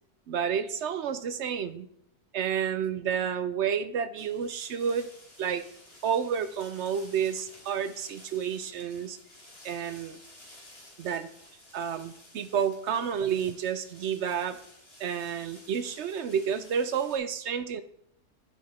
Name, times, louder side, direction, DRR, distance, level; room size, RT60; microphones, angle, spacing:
voice 1, 0.3-1.9 2.3-5.1 5.4-5.6 6.0-9.2 9.6-10.2 11.0-11.3 11.7-14.6 15.0-17.8, right 7 dB, 65° right, 12 dB, 0.7 m, -30 dB
sound 1, 4.2-17.2, left 1 dB, 40° left, 3.4 m, -53 dB
9.6 x 7.6 x 4.2 m, 0.70 s
omnidirectional pair, 1.7 m